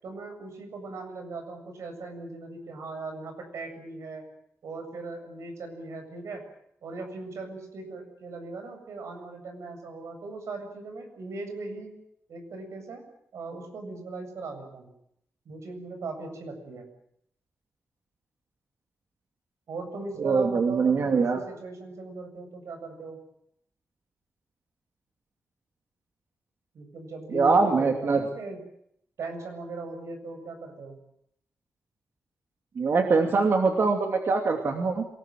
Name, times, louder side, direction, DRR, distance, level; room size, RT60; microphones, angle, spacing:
voice 1, 0.0-4.2 4.6-6.4 6.8-11.9 12.3-13.0 13.3-14.9 15.5-16.9 19.7-23.2 26.7-28.6 29.2-31.0, right 3 dB, 85° right, 6 dB, 7.7 m, -39 dB
voice 2, 20.2-21.4 27.3-28.2 32.8-35.1, right 4 dB, 50° right, 4 dB, 2.6 m, -23 dB
26.5 x 19.0 x 9.3 m, 0.73 s
wide cardioid pair, 175°, 5 cm